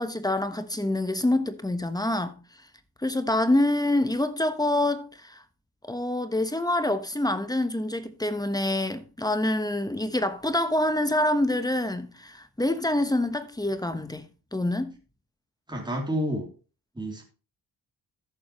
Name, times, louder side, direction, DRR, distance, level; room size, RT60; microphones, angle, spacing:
voice 1, 0.0-2.4 3.0-5.4 5.8-14.2 14.5-14.9, left 1 dB, 10° left, 1.2 m, -26 dB
voice 2, 15.7-16.5 16.9-17.2, equal, 10° right, 3.3 m, -29 dB
13.5 x 7.2 x 3.1 m
cardioid pair, 90°, 37 cm